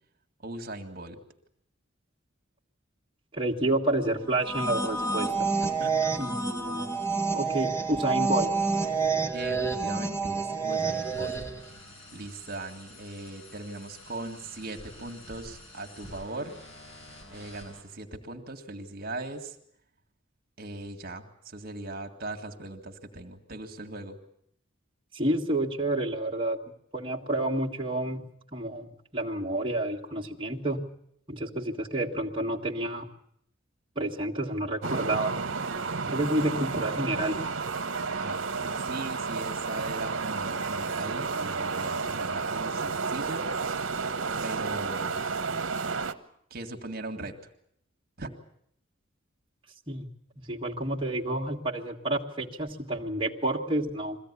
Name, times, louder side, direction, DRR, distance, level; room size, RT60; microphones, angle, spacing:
voice 1, 0.4-1.2 5.6-6.1 9.3-11.4 12.1-16.5 17.3-19.6 20.6-24.2 38.2-43.6 44.4-45.2 46.5-47.4 48.2-48.4, right 2 dB, 50° right, 3 dB, 1.9 m, -39 dB
voice 2, 3.3-5.5 6.2-6.9 7.3-8.5 25.1-26.6 26.9-28.2 28.5-30.8 31.3-33.1 34.0-35.4 36.1-37.4 49.9-50.1 50.5-54.2, right 1 dB, 25° right, -2 dB, 1.8 m, -29 dB
sound 1, 4.3-11.7, right 4 dB, 15° left, 1.8 m, -28 dB
Train On Synthetics, 10.7-17.8, left 1 dB, 70° left, 6.7 m, -49 dB
sound 2, 34.8-46.1, right 4 dB, 70° right, 1.1 m, -31 dB
22.5 x 16.0 x 9.8 m, 0.70 s
head